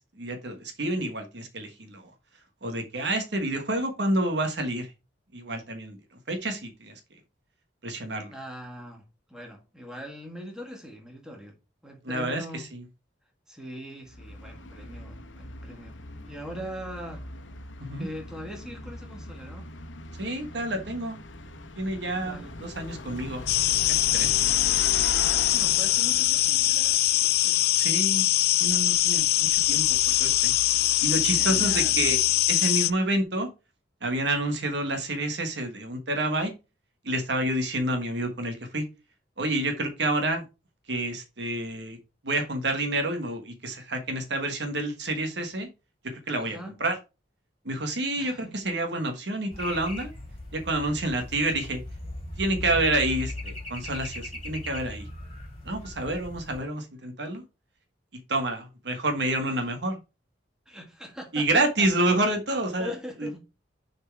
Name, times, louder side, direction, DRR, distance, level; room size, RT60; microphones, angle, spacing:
voice 1, 0.0-2.1 2.6-4.9 5.3-6.0 6.3-7.0 7.8-8.3 12.0-12.8 17.8-18.1 20.2-21.2 21.8-23.5 23.9-24.4 27.8-28.2 28.6-30.5 31.0-32.2 32.5-33.5 34.0-36.5 37.0-38.9 39.4-40.4 40.9-42.0 42.2-45.7 46.0-47.0 47.6-50.1 50.5-51.8 52.4-55.1 55.6-57.4 58.3-60.0 61.3-62.9 63.2-63.3, right 1 dB, 65° right, 1.3 m, -28 dB
voice 2, 8.3-11.6 11.8-12.7 13.5-16.0 16.2-17.3 18.0-19.7 22.2-22.5 24.5-24.6 25.1-27.6 31.3-32.0 46.4-46.7 48.2-48.5 60.7-61.9 62.8-63.4, equal, 5° right, 1.8 m, -41 dB
Bus, 14.1-32.6, left 2 dB, 85° left, 1.0 m, -41 dB
sound 1, 23.5-32.9, left 16 dB, 55° left, 0.3 m, -23 dB
sound 2, 49.5-56.6, left 1 dB, 35° left, 2.8 m, -38 dB
6.8 x 4.4 x 4.6 m
head